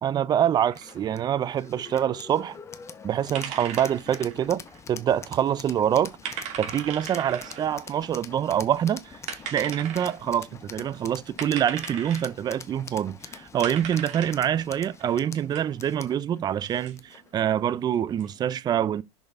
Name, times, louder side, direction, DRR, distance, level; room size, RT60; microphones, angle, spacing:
voice 1, 0.0-2.6 3.0-4.6 4.9-6.1 6.6-9.2 9.5-19.0, right 10 dB, 25° right, 0.5 m, -25 dB
sound 1, 0.7-17.3, left 6 dB, 20° left, 0.7 m, -45 dB
sound 2, 0.7-18.5, right 8 dB, 50° right, 2.8 m, -40 dB
6.2 x 5.3 x 3.7 m
supercardioid pair, 120°, 16 cm